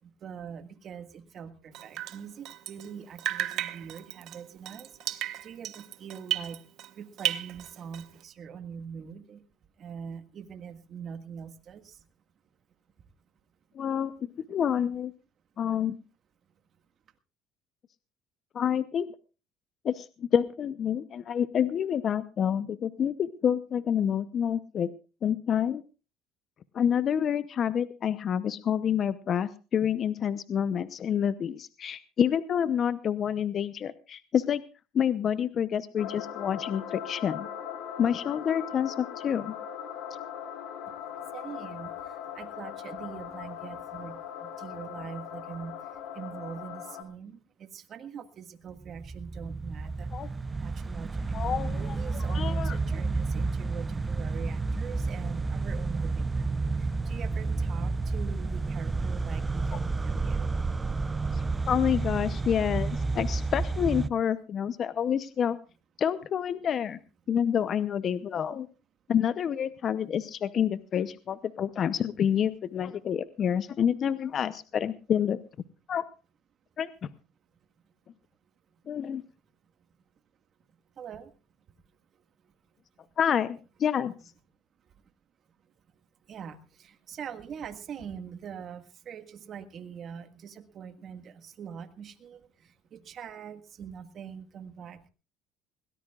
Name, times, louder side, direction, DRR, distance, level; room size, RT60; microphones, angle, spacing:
voice 1, 0.0-6.6 7.0-9.5 9.8-12.1 41.3-51.4 51.6-60.6 81.0-81.3 82.1-82.5 83.0-83.1 84.8-84.9 85.6-85.7 86.2-95.1, right 7 dB, 45° right, 8 dB, 1.8 m, -43 dB
Drip, 1.7-2.9 3.2-6.9 7.2-8.2, right 13 dB, 65° right, 1.0 m, -34 dB
voice 2, 13.7-15.1 15.6-16.0 18.5-19.1 19.8-24.9 25.2-25.8 26.7-34.6 34.9-37.5 38.0-39.5 50.1-50.3 51.3-52.8 61.3-65.6 66.0-67.0 67.3-68.7 69.1-75.4 75.9-76.0 76.8-77.1 78.9-79.2 83.2-84.1, left 8 dB, 45° left, 14 dB, 0.7 m, -28 dB
sound 1, 36.0-47.0, left 9 dB, 75° left, 2.6 m, -40 dB
sound 2, 48.8-64.1, right 3 dB, 20° right, 0.6 m, -30 dB
21.0 x 18.0 x 2.4 m, 0.34 s
supercardioid pair, 105°, 0 cm